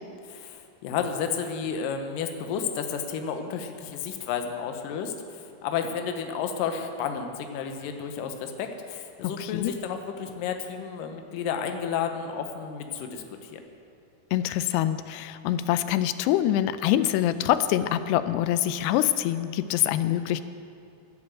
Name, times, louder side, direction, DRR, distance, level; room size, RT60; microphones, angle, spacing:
voice 1, 0.2-13.6, left 7 dB, 70° left, 5 dB, 2.3 m, -32 dB
voice 2, 9.2-9.7 14.3-20.4, left 12 dB, 90° left, 12 dB, 2.7 m, -25 dB
11.5 x 11.0 x 7.6 m, 2.4 s
omnidirectional pair, 4.7 m